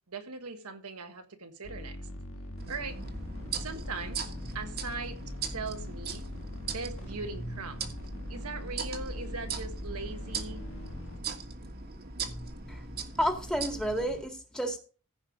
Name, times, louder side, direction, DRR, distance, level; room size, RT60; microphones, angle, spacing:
voice 1, 0.1-2.0 2.7-3.0 3.5-4.3 4.5-5.2 5.5-6.3 6.6-7.9 8.3-10.6, right 4 dB, 80° right, 1.4 m, -40 dB
sound 1, 1.6-11.2, left 1 dB, 65° left, 1.7 m, -42 dB
sound 2, 2.6-14.2, right 4 dB, 45° right, 1.6 m, -40 dB
voice 2, 13.2-14.8, equal, 5° left, 2.0 m, -30 dB
15.5 x 5.3 x 5.0 m
head